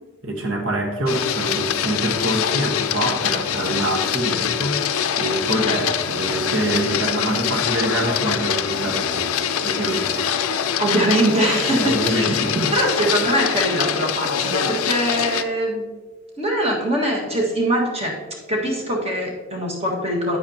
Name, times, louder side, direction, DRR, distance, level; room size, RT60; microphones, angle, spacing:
voice 1, 0.2-4.9 5.2-9.3 9.6-10.5 11.7-12.7, right 1 dB, 60° right, 3 dB, 1.3 m, -25 dB
Printer, 1.1-15.4, left 8 dB, 80° left, 0.5 m, -24 dB
voice 2, 10.8-12.4 12.7-15.9 16.4-18.2 18.5-20.4, right 1 dB, 30° right, -2 dB, 1.7 m, -22 dB
9.7 x 8.7 x 2.9 m, 1.3 s
head